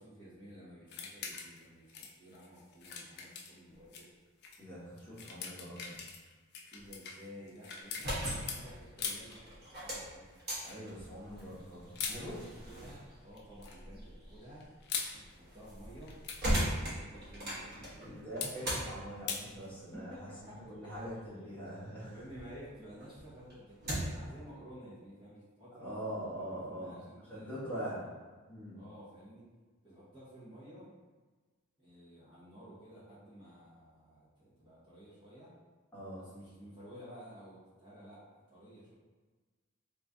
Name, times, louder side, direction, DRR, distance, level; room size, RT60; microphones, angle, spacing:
voice 1, 0.0-4.1 6.7-10.3 12.0-14.7 15.3-18.2 19.9-20.6 22.1-28.1 28.7-29.5 29.8-30.9 31.8-35.5 36.2-38.9, equal, 20° right, -11 dB, 0.9 m, -53 dB
sound 1, 0.9-1.6 1.9-4.1 4.4-4.6 5.0-8.6 9.0-9.4 10.5-10.8 11.9-12.2 13.3-13.8 14.6-15.2 16.0-16.6 18.4-18.5 19.3-19.4, left 6 dB, 50° left, 0.4 m, -41 dB
voice 2, 4.6-6.0 10.6-12.3 18.0-20.1 20.4-22.1 25.8-26.9 27.3-28.0 28.5-28.8 35.9-36.2, equal, 10° left, -11 dB, 1.2 m, -43 dB
sound 2, 7.8-22.5 22.9-24.3, equal, 45° right, 1.1 m, -40 dB
3.1 x 2.6 x 3.5 m, 1.3 s
head